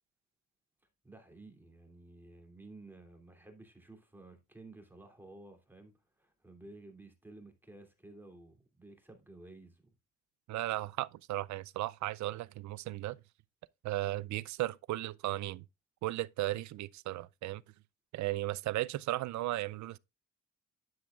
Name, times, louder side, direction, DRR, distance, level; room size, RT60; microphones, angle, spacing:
voice 1, 1.0-9.9, right 2 dB, 5° right, 2.7 m, -54 dB
voice 2, 10.5-13.2 13.8-15.6 16.0-17.6 18.1-20.0, right 16 dB, 70° right, 0.5 m, -35 dB
10.5 x 7.7 x 2.4 m
cardioid pair, 90°, 30 cm